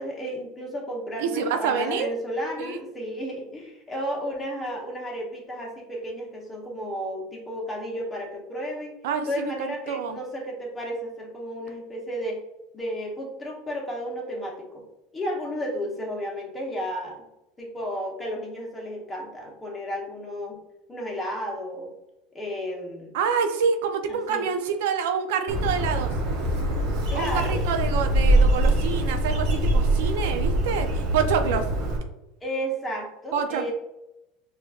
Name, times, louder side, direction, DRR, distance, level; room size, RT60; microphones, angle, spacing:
voice 1, 0.0-9.0 9.3-12.4 12.7-14.8 15.1-17.2 17.6-20.6 20.9-21.9 22.3-23.2 24.1-24.5 27.1-27.6 32.4-33.7, equal, 15° left, -2 dB, 0.9 m, -33 dB
voice 2, 1.2-2.1 2.6-2.8 9.0-10.2 23.1-26.1 27.1-31.7 33.3-33.7, right 6 dB, 85° right, 6 dB, 0.4 m, -27 dB
Bird, 25.5-32.0, right 1 dB, 55° right, 0.7 m, -23 dB
5.0 x 2.5 x 2.3 m, 0.92 s
supercardioid pair, 135°, 0 cm